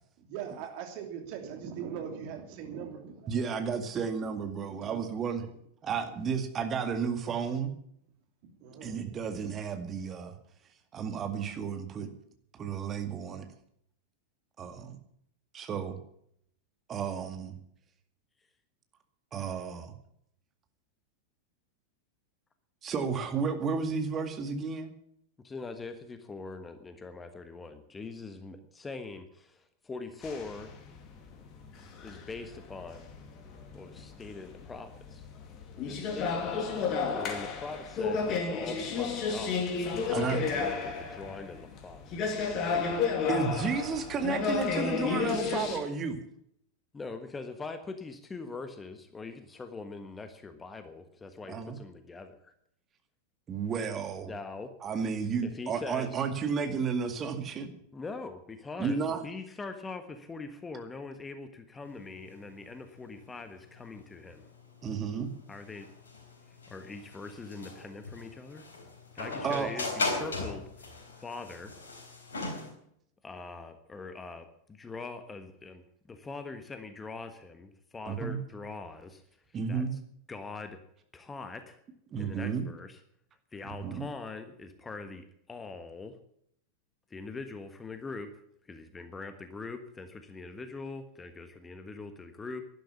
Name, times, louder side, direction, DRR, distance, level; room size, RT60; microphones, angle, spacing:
voice 1, 0.2-3.6 4.7-5.0 6.0-6.2 8.4-9.4, right 7 dB, 45° right, 5 dB, 2.9 m, -41 dB
voice 2, 3.3-5.4 5.8-7.7 8.8-10.3 10.9-12.1 12.5-13.5 14.6-15.0 15.5-16.0 16.9-17.6 19.3-19.9 22.8-24.9 40.1-40.4 43.3-46.2 51.5-51.8 53.5-54.3 54.8-57.7 58.8-59.3 64.8-65.3 69.4-69.7 78.1-78.4 79.5-79.9 82.1-82.7 83.6-84.1, right 6 dB, 25° right, 7 dB, 2.1 m, -32 dB
voice 3, 25.4-30.7 32.0-33.0 33.7-35.2 35.9-36.5 37.1-42.0 46.9-52.5 54.2-54.7 55.4-56.2 57.9-64.4 65.5-65.9 66.5-68.6 69.1-71.7 73.2-79.2 79.7-79.9 80.3-80.8 81.1-81.8 82.2-83.0 83.5-86.2 87.1-88.3 88.6-92.6, left 3 dB, 15° left, 9 dB, 1.4 m, -42 dB
sound 1, 30.2-45.8, left 5 dB, 35° left, 2.6 m, -32 dB
sound 2, 61.8-72.7, left 3 dB, 70° left, 4.2 m, -38 dB
12.0 x 11.5 x 8.4 m, 0.71 s
figure-of-eight pair, 90°, 0 cm